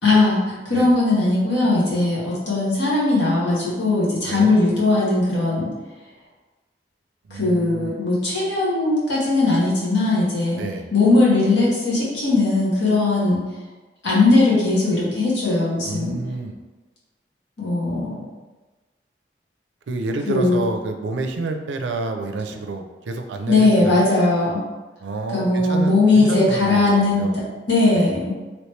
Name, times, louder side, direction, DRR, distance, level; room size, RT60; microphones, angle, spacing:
voice 1, 0.0-5.7 7.3-10.6 10.9-13.4 14.0-16.2 17.6-18.1 20.3-20.6 23.5-24.6 25.3-27.4 27.7-28.3, left 2 dB, 80° left, -7 dB, 1.3 m, -19 dB
voice 2, 4.2-4.5 7.3-7.9 10.6-10.9 15.8-16.6 19.9-24.0 25.0-27.4 28.0-28.1, right 3 dB, 85° right, 5 dB, 0.4 m, -29 dB
3.1 x 3.0 x 3.1 m, 1.2 s
head